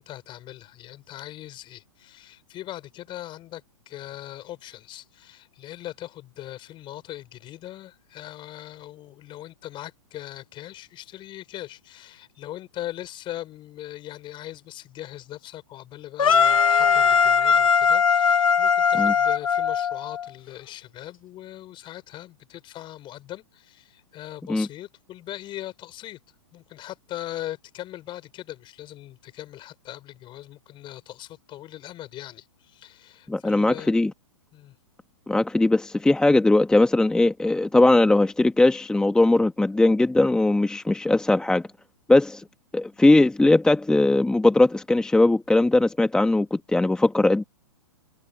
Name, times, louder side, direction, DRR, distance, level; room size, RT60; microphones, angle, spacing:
voice 1, 0.0-26.2 26.5-34.0 34.5-34.8, left 14 dB, 30° left, 5.4 m, -40 dB
sound 1, 16.2-20.3, left 6 dB, 85° left, 2.0 m, -20 dB
voice 2, 33.3-34.1 35.3-41.6 42.1-42.4 42.7-47.4, left 2 dB, 5° left, 1.1 m, -19 dB
hypercardioid pair, 130°, 17 cm